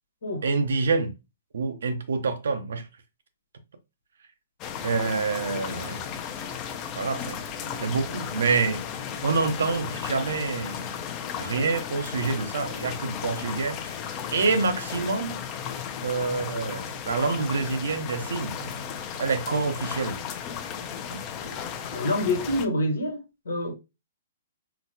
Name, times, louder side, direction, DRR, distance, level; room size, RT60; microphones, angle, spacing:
voice 1, 0.4-1.1 1.5-2.9 4.8-6.0 7.0-7.4 7.8-8.8 9.2-10.9 11.4-14.0 14.3-15.3 16.0-18.5 19.2-20.2 21.1-21.2, right 4 dB, 80° right, 0.7 m, -27 dB
sound 1, 4.6-22.7, left 8 dB, 30° left, 0.4 m, -35 dB
voice 2, 21.9-23.7, left 1 dB, 90° left, 1.2 m, -27 dB
3.9 x 2.1 x 2.7 m
hypercardioid pair, 145°, 0 cm